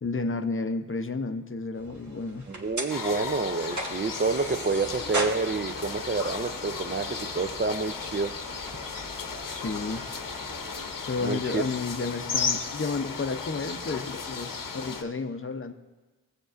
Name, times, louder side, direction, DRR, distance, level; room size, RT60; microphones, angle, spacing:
voice 1, 0.0-2.5 9.5-10.0 11.1-15.7, left 4 dB, 35° left, 7 dB, 0.6 m, -31 dB
sound 1, 1.7-10.9, right 1 dB, 55° right, 1.5 m, -39 dB
voice 2, 2.5-8.4 11.2-11.6, right 4 dB, 30° right, 9 dB, 0.5 m, -28 dB
sound 2, 2.9-15.0, left 5 dB, 70° left, 0.9 m, -35 dB
15.0 x 8.0 x 2.5 m, 1.3 s
cardioid pair, 40°, 34 cm